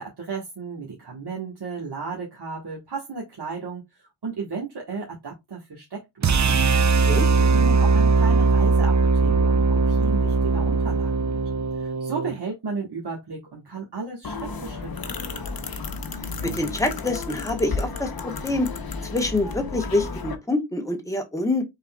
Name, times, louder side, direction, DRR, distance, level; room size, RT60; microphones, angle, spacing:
voice 1, 0.0-3.8 4.2-6.4 6.8-11.4 11.8-15.6, right 5 dB, 60° right, 1.4 m, -34 dB
sound 1, 6.2-12.4, right 4 dB, 40° right, 0.5 m, -20 dB
sound 2, 14.2-20.3, left 4 dB, 55° left, 0.8 m, -32 dB
voice 2, 16.4-18.7 19.1-21.6, left 2 dB, 5° left, 1.2 m, -26 dB
5.5 x 3.9 x 2.3 m
wide cardioid pair, 90°, 44 cm